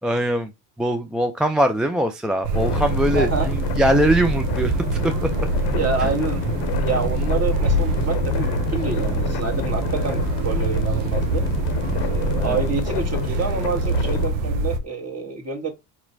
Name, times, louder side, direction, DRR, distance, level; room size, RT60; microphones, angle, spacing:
voice 1, 0.0-0.5 0.8-5.3 6.0-6.1 12.4-12.6, right 1 dB, ahead, 0.3 m, -22 dB
sound 1, 2.4-14.8, right 3 dB, 70° right, 0.8 m, -24 dB
sound 2, 2.5-14.3, left 9 dB, 65° left, 0.8 m, -29 dB
voice 2, 3.1-3.5 5.7-6.4 6.8-11.5 12.0-15.7, right 4 dB, 35° right, 1.5 m, -27 dB
4.4 x 2.9 x 2.5 m
hypercardioid pair, 65°, 46 cm